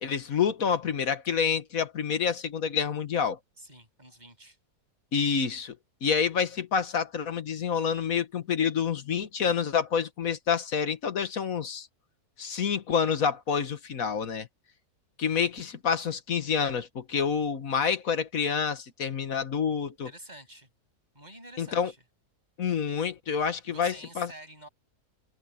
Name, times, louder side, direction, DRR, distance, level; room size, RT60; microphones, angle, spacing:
voice 1, 0.0-3.4 5.1-5.8 6.0-11.9 12.4-14.5 15.2-20.1 21.6-21.9 22.6-24.3, left 6 dB, 60° left, 1.8 m, -28 dB
voice 2, 3.6-4.6 20.0-20.7 21.1-22.0 23.6-24.7, right 1 dB, 25° right, 8.1 m, -48 dB
omnidirectional pair, 1.7 m